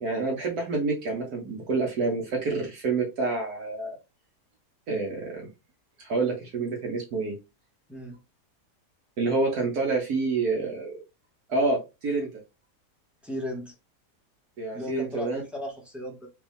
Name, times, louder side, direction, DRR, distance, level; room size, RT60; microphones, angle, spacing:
voice 1, 0.0-4.0 4.9-5.4 6.0-7.3 9.2-10.9 11.5-12.3 14.6-15.4, right 3 dB, 70° right, 1.6 m, -28 dB
voice 2, 13.2-13.8 14.7-16.3, equal, ahead, 1.8 m, -36 dB
4.8 x 3.2 x 3.5 m
omnidirectional pair, 1.7 m